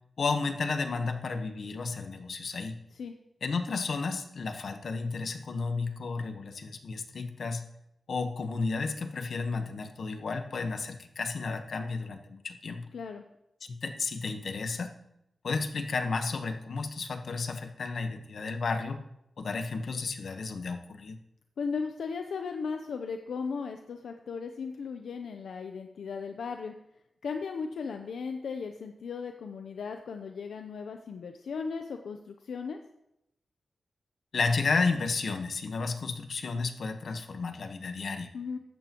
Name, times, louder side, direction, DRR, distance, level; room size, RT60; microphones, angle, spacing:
voice 1, 0.2-2.8 3.4-7.6 8.1-12.9 13.7-14.9 15.4-19.0 19.4-21.2 34.3-38.3, left 4 dB, 70° left, 7 dB, 1.2 m, -32 dB
voice 2, 12.9-13.2 21.6-26.7 27.2-32.8 38.3-38.6, left 5 dB, 85° left, 5 dB, 0.6 m, -36 dB
14.5 x 11.5 x 3.0 m, 0.82 s
cardioid pair, 75°, 0 cm